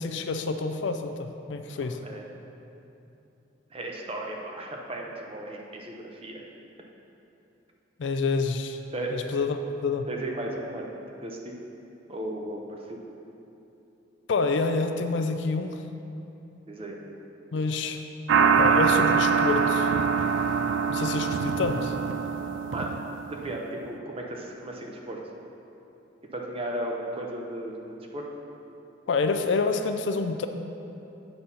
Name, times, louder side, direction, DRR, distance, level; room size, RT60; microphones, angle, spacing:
voice 1, 0.0-2.0 8.0-8.8 9.1-10.1 14.3-15.8 17.5-18.0 18.6-19.9 20.9-22.0 29.1-30.5, left 4 dB, 70° left, 7 dB, 0.4 m, -28 dB
voice 2, 1.8-2.3 3.7-6.5 8.9-9.2 10.1-10.9 11.2-11.5 12.1-13.0 16.7-17.0 22.7-23.0 23.3-25.2 26.3-28.3, right 1 dB, 30° right, 0 dB, 0.7 m, -35 dB
sound 1, 18.3-23.6, right 5 dB, 70° right, 0.3 m, -24 dB
7.8 x 4.1 x 5.6 m, 2.9 s
head